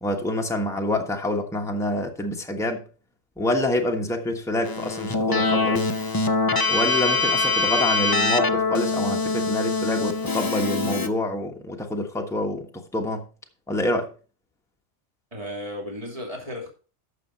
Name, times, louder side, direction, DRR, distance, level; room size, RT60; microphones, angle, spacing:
voice 1, 0.0-2.8 3.4-5.9 6.7-13.2 13.7-14.1, left 1 dB, ahead, 1.2 m, -27 dB
Keyboard (musical), 4.6-11.1, left 3 dB, 20° left, 0.6 m, -23 dB
voice 2, 15.3-16.7, equal, 25° right, 3.1 m, -34 dB
12.0 x 6.6 x 4.2 m
omnidirectional pair, 1.4 m